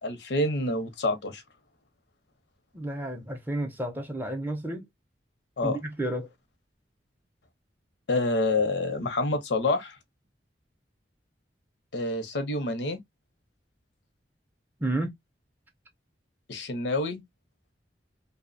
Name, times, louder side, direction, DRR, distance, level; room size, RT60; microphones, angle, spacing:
voice 1, 0.0-1.4 5.6-5.8 8.1-10.0 11.9-13.0 16.5-17.2, left 2 dB, 75° left, 0.6 m, -27 dB
voice 2, 2.7-4.9 5.6-6.3 14.8-15.2, right 1 dB, 10° right, 0.4 m, -31 dB
2.6 x 2.0 x 2.4 m
head